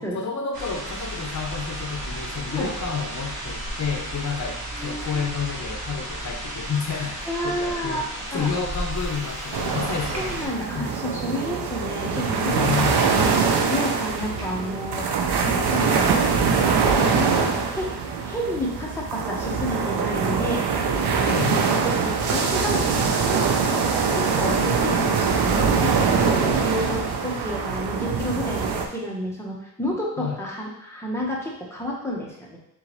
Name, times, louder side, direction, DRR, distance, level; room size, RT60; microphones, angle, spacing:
voice 1, 0.0-8.1 8.3-10.4 10.7-11.2 12.5-13.0 21.3-21.7 30.2-30.4, left 6 dB, 45° left, 2 dB, 0.8 m, -30 dB
sound 1, 0.5-10.5, right 1 dB, 65° right, 1.5 m, -33 dB
voice 2, 4.7-5.2 7.3-8.0 8.3-8.5 10.2-15.0 15.5-16.2 16.6-17.9 18.2-20.6 21.0-21.3 21.8-23.8 24.1-32.6, equal, 5° left, -4 dB, 1.2 m, -30 dB
Train / Sliding door, 8.1-17.4, right 2 dB, 40° right, 1.0 m, -42 dB
sound 2, 9.5-28.9, right 5 dB, 85° right, 0.6 m, -23 dB
4.0 x 3.7 x 3.1 m, 0.77 s
cardioid pair, 85°, 38 cm